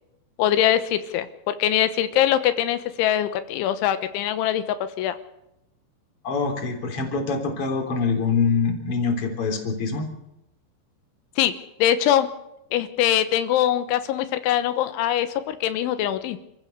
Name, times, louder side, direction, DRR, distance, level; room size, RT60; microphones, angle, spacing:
voice 1, 0.4-4.6 5.0-5.2 11.4-11.6 11.8-12.3 12.7-16.4, left 11 dB, 85° left, 10 dB, 3.5 m, -22 dB
voice 2, 6.2-10.1, left 4 dB, 30° left, 3 dB, 3.9 m, -24 dB
27.5 x 15.5 x 6.7 m, 0.86 s
omnidirectional pair, 5.3 m